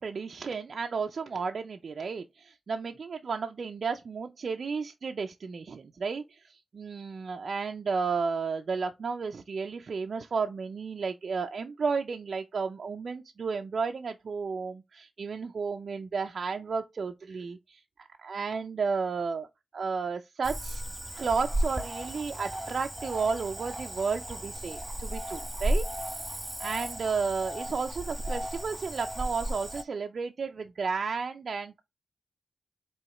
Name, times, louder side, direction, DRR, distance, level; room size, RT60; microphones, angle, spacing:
voice 1, 0.0-19.5 19.7-20.8 21.2-25.8 26.6-31.8, right 5 dB, 65° right, 0.4 m, -33 dB
Cricket / Frog, 20.4-29.8, right 1 dB, 10° right, 1.3 m, -34 dB
4.7 x 3.0 x 3.0 m
supercardioid pair, 40°, 0 cm